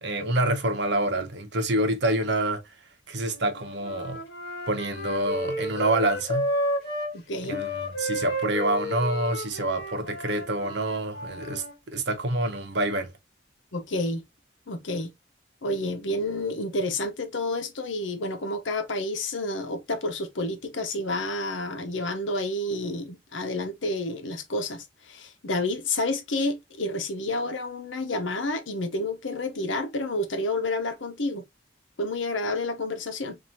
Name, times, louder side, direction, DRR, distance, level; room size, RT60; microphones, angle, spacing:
voice 1, 0.0-2.6 3.1-4.2 4.7-6.5 7.4-13.1, right 1 dB, 65° right, 0.9 m, -27 dB
Wind instrument woodwind instrument, 3.3-7.1 7.5-11.7, equal, 50° left, 1.6 m, -32 dB
voice 2, 7.1-7.7 13.7-14.2 14.7-15.1 15.6-31.4 32.0-33.4, left 2 dB, 80° left, 0.9 m, -30 dB
4.1 x 2.7 x 2.9 m
head